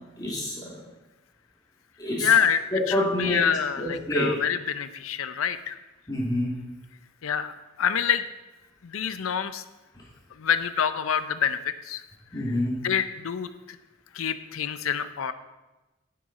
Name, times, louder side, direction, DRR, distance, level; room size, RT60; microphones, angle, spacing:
voice 1, 0.2-0.6 2.0-2.3 2.7-3.4 3.8-4.3 6.1-6.5 12.3-12.8, left 1 dB, 20° left, -5 dB, 2.4 m, -27 dB
voice 2, 2.2-2.6 2.9-5.8 7.2-8.2 8.8-9.6 10.4-12.0 12.8-13.8 14.1-15.3, left 8 dB, 90° left, 12 dB, 0.6 m, -26 dB
9.6 x 7.5 x 4.1 m, 1.1 s
head